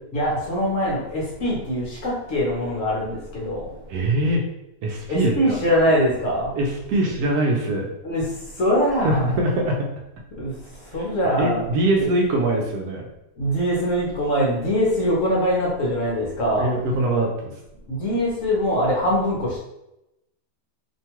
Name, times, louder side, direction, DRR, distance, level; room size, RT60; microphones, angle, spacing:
voice 1, 0.1-3.7 5.1-6.6 8.0-9.3 10.4-10.5 10.8-11.6 12.0-12.1 13.4-16.7 17.9-19.6, equal, 60° left, -4 dB, 1.0 m, -23 dB
voice 2, 3.9-4.4 4.8-5.6 6.6-7.9 9.0-9.9 11.4-13.1 16.5-17.5, right 1 dB, 70° right, 0 dB, 1.0 m, -22 dB
3.0 x 2.2 x 2.9 m, 0.88 s
omnidirectional pair, 1.8 m